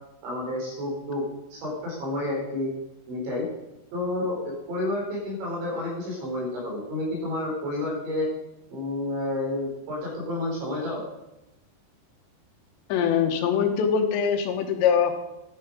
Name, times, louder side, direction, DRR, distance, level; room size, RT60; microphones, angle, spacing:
voice 1, 0.2-1.2 1.5-2.7 3.1-3.4 3.9-8.3 8.7-11.0, left 2 dB, 80° right, -4 dB, 6.7 m, -30 dB
voice 2, 12.9-15.1, left 7 dB, 80° left, 5 dB, 3.2 m, -23 dB
12.0 x 9.3 x 5.3 m, 0.95 s
omnidirectional pair, 5.2 m